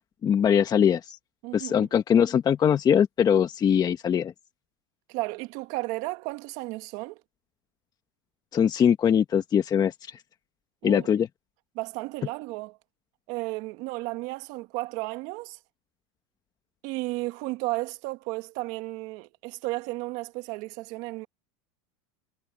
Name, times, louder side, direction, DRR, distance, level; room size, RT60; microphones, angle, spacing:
voice 1, 0.2-1.2 1.5-4.3 8.5-10.2 10.8-11.3, left 8 dB, 25° left, 1.4 m, -22 dB
voice 2, 1.4-1.9 5.1-7.2 10.8-11.1 11.7-12.8 13.3-15.6 16.8-21.3, right 22 dB, 55° right, 1.5 m, -33 dB
supercardioid pair, 140°, 16 cm